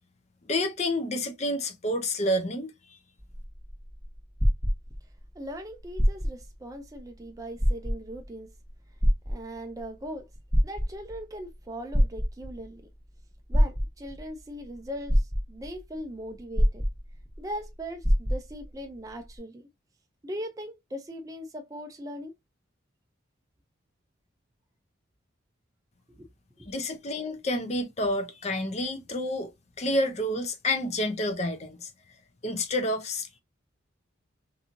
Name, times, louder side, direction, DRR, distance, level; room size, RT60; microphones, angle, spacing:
voice 1, 0.5-2.7 26.7-29.5 29.8-31.9 32.4-33.4, left 1 dB, 35° left, 0.5 m, -29 dB
sound 1, 3.2-5.3 5.9-6.5 7.0-7.1 7.5-8.3 9.0-9.8 10.3-11.2 11.9-12.7 13.5-14.2 14.7-14.8 15.1-15.8 16.5-17.4 17.6-17.7 18.0-18.7 19.4-19.5, equal, 10° left, 1.2 m, -24 dB
voice 2, 5.3-8.5 9.3-10.3 10.6-12.8 13.5-16.8 17.4-19.7 20.2-22.3 26.1-26.3 26.6-26.7, equal, 20° right, 0.4 m, -39 dB
2.9 x 2.7 x 2.3 m
head